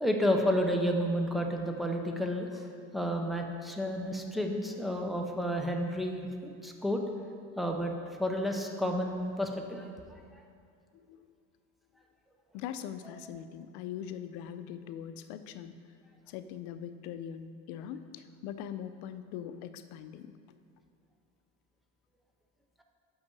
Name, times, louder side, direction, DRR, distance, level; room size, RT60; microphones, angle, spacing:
voice 1, 0.0-2.6 2.9-7.0 7.6-7.9 8.2-9.8, equal, ahead, 2 dB, 0.4 m, -31 dB
voice 2, 12.5-15.8 16.3-20.3, left 9 dB, 75° left, 11 dB, 0.5 m, -41 dB
5.6 x 5.5 x 6.7 m, 2.3 s
cardioid pair, 165°, 29 cm